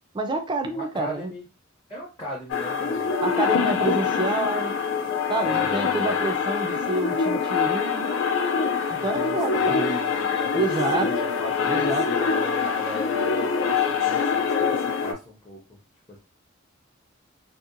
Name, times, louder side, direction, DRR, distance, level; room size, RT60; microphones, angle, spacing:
voice 1, 0.1-1.3 3.2-4.7 5.3-8.1 8.9-9.8 10.5-11.1 11.6-12.0, right 2 dB, 25° right, 6 dB, 0.4 m, -28 dB
voice 2, 0.7-1.5 1.9-3.1 3.6-3.9 5.4-6.9 9.0-10.7 10.9-15.8 16.1-16.2, equal, 20° left, -3 dB, 0.6 m, -38 dB
sound 1, 2.5-15.1, left 6 dB, 65° left, 0.4 m, -24 dB
2.7 x 2.1 x 2.5 m, 0.31 s
head